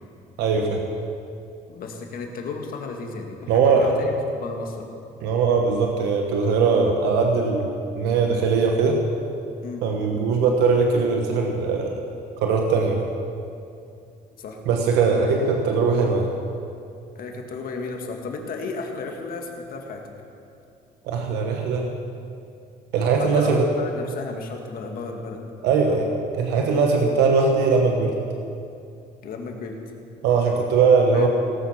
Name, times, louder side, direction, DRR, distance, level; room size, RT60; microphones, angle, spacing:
voice 1, 0.4-0.8 3.5-3.9 5.2-9.0 9.8-12.0 12.4-13.0 14.7-16.3 21.0-21.9 22.9-23.7 25.6-26.1 26.3-28.2 30.2-31.3, right 4 dB, 90° right, 2 dB, 1.2 m, -20 dB
voice 2, 1.7-4.9 9.6-9.8 14.4-14.6 17.2-20.0 23.2-25.4 29.2-29.7 31.1-31.3, left 4 dB, 60° left, 2 dB, 1.9 m, -33 dB
18.0 x 8.4 x 5.9 m, 2.5 s
cardioid pair, 110°, 17 cm